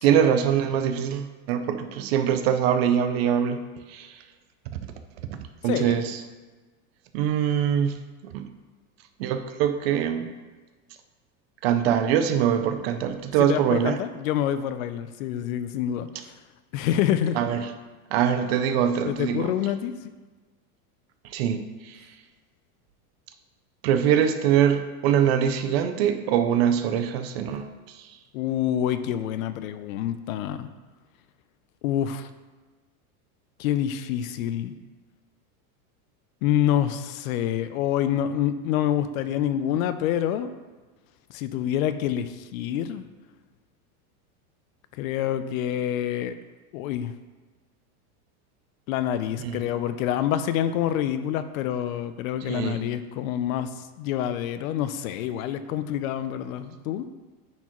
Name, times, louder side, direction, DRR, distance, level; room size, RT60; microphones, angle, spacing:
voice 1, 0.0-4.2 4.7-4.8 5.6-6.2 7.1-8.0 8.2-8.5 9.2-10.3 11.6-14.0 17.3-17.7 18.1-19.5 21.2-22.1 23.8-28.1 49.4-49.6 52.5-52.8, right 9 dB, 45° right, 8 dB, 0.4 m, -23 dB
voice 2, 5.7-6.0 13.4-16.1 16.7-17.4 19.1-19.9 28.3-30.7 31.8-32.3 33.6-34.7 36.4-40.5 41.3-43.0 44.9-46.4 46.7-47.1 48.9-53.7 54.0-57.1, left 10 dB, 70° left, 12 dB, 0.6 m, -27 dB
9.4 x 4.5 x 3.0 m, 1.3 s
supercardioid pair, 165°, 43 cm